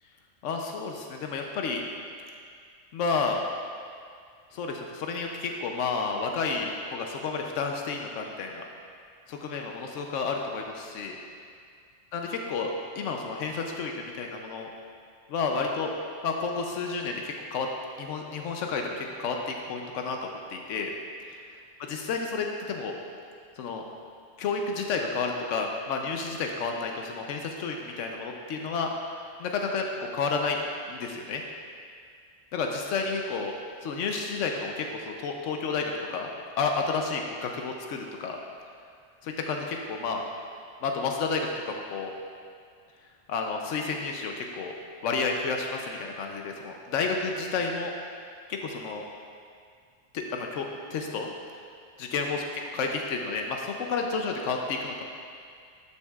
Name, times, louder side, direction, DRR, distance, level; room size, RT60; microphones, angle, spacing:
voice 1, 0.4-1.8 2.9-3.4 4.5-8.6 9.3-11.2 12.1-12.7 12.9-14.7 15.3-15.9 16.2-17.7 18.0-20.9 21.9-22.9 23.6-23.8 24.4-30.6 30.9-31.4 32.5-33.5 33.8-36.3 36.6-38.4 39.2-40.2 40.8-42.1 43.3-44.7 45.0-47.9 48.5-49.0 50.1-51.3 52.0-55.0, left 4 dB, 85° left, 2 dB, 1.0 m, -31 dB
11.0 x 7.0 x 2.4 m, 2.2 s
omnidirectional pair, 1.2 m